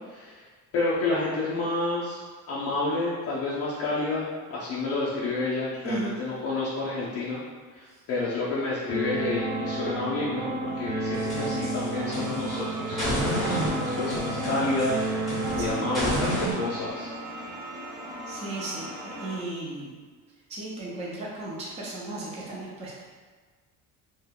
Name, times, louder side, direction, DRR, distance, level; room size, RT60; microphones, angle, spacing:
voice 1, 0.1-0.5 0.7-7.4 7.7-15.1 15.5-17.1, left 2 dB, 45° left, -7 dB, 0.4 m, -30 dB
voice 2, 5.8-6.1 7.9-8.0 15.6-15.9 18.3-19.9 20.5-23.0, right 2 dB, 20° right, -5 dB, 0.4 m, -35 dB
sound 1, 8.9-16.9, right 2 dB, 80° right, 1.1 m, -31 dB
sound 2, 11.1-12.6 13.0-16.5, equal, ahead, 0.8 m, -31 dB
sound 3, 11.9-19.4, right 1 dB, 60° right, 0.7 m, -39 dB
2.7 x 2.1 x 3.5 m, 1.5 s
cardioid pair, 170°, 35 cm